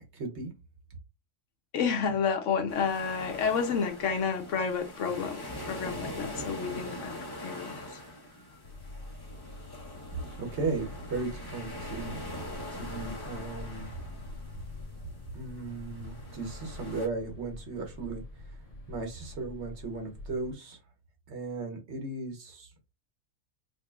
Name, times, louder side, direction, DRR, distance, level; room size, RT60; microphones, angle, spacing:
voice 1, 0.1-0.5 10.4-12.4 12.7-13.9 15.3-18.2 18.9-20.8 21.3-22.7, right 3 dB, 60° right, 1.3 m, -36 dB
voice 2, 1.7-8.0, left 6 dB, 70° left, 1.0 m, -30 dB
sound 1, 2.7-17.1, left 1 dB, 20° left, 1.0 m, -42 dB
sound 2, 8.6-20.5, left 2 dB, 40° left, 0.6 m, -46 dB
5.1 x 2.6 x 2.3 m
omnidirectional pair, 1.3 m